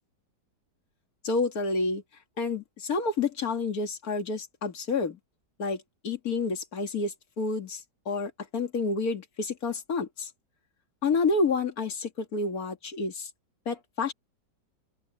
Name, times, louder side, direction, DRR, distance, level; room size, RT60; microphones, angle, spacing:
voice 1, 1.2-2.0 2.4-5.2 5.6-10.3 11.0-13.3 13.7-14.1, left 4 dB, 55° left, 2.6 m, -29 dB
open air
omnidirectional pair, 1.9 m